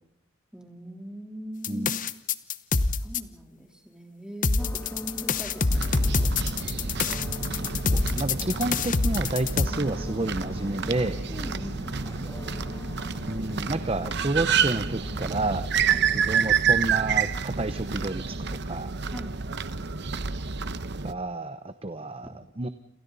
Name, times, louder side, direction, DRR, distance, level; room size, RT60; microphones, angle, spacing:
voice 1, 0.5-2.0 3.0-6.6 11.3-11.9 15.9-16.0 19.1-19.3, equal, 5° right, 2 dB, 3.5 m, -40 dB
sound 1, 1.6-3.2 4.4-9.7, left 4 dB, 40° left, 0.9 m, -25 dB
sound 2, 4.6-15.5, left 1 dB, 15° left, 1.7 m, -41 dB
sound 3, 5.7-21.1, right 6 dB, 55° right, 1.0 m, -29 dB
voice 2, 7.9-11.2 13.3-15.7 16.1-18.4 18.7-18.9 21.0-22.7, right 2 dB, 30° right, 10 dB, 0.8 m, -30 dB
29.0 x 27.5 x 4.1 m, 0.75 s
head